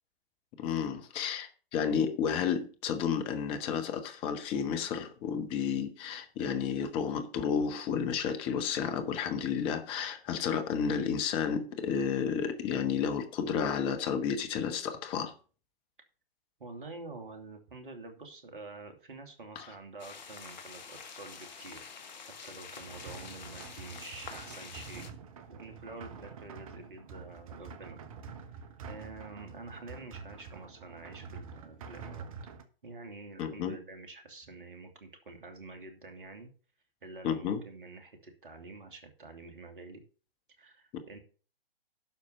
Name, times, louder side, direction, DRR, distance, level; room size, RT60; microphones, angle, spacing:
voice 1, 0.6-15.3 19.5-19.7 33.4-33.8 37.2-37.6, left 7 dB, 20° left, 1.1 m, -31 dB
voice 2, 16.6-21.8 22.4-25.0 25.5-28.0 28.4-32.3 32.8-36.5 37.0-40.0 40.6-41.2, right 3 dB, 60° right, 2.8 m, -47 dB
sound 1, 20.0-25.1, left 6 dB, 45° left, 1.6 m, -47 dB
sound 2, 22.8-32.6, right 5 dB, 35° right, 1.2 m, -47 dB
11.5 x 4.7 x 6.9 m
figure-of-eight pair, 130°, 30 cm